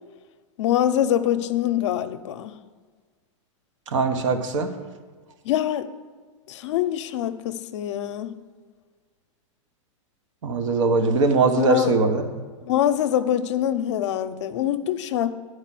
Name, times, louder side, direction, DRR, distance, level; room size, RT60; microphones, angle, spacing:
voice 1, 0.6-2.6 5.4-5.9 6.5-8.4 11.5-11.9 12.6-15.3, left 11 dB, 65° left, 11 dB, 0.6 m, -24 dB
voice 2, 3.9-4.7 10.4-12.3, right 3 dB, 75° right, 7 dB, 1.2 m, -21 dB
9.6 x 4.8 x 7.5 m, 1.5 s
supercardioid pair, 145°, 16 cm